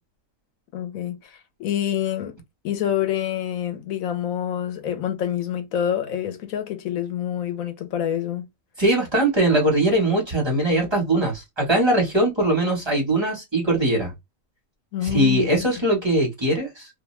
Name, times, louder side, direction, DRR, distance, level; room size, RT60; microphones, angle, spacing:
voice 1, 0.7-2.4 2.6-8.5 14.9-15.5, left 10 dB, 85° left, 1.1 m, -27 dB
voice 2, 8.8-14.1 15.0-16.9, right 1 dB, 20° right, 1.2 m, -21 dB
2.6 x 2.1 x 3.1 m
omnidirectional pair, 1.4 m